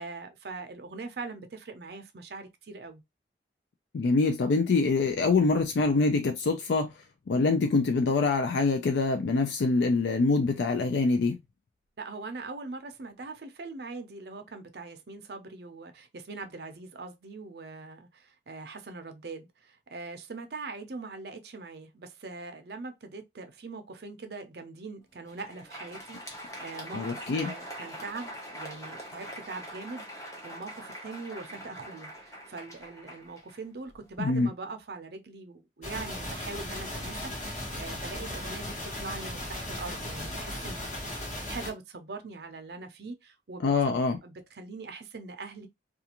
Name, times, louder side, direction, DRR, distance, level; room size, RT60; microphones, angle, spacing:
voice 1, 0.0-3.0 12.0-40.9 41.5-45.7, right 3 dB, 60° right, 0.5 m, -42 dB
voice 2, 3.9-6.9 7.3-11.4 26.9-27.5 34.2-34.5 43.6-44.2, left 3 dB, 75° left, 0.4 m, -25 dB
Crowd, 25.1-34.1, equal, 15° left, 0.6 m, -43 dB
sound 1, 35.8-41.7, left 1 dB, 40° left, 1.1 m, -37 dB
2.4 x 2.3 x 2.8 m
head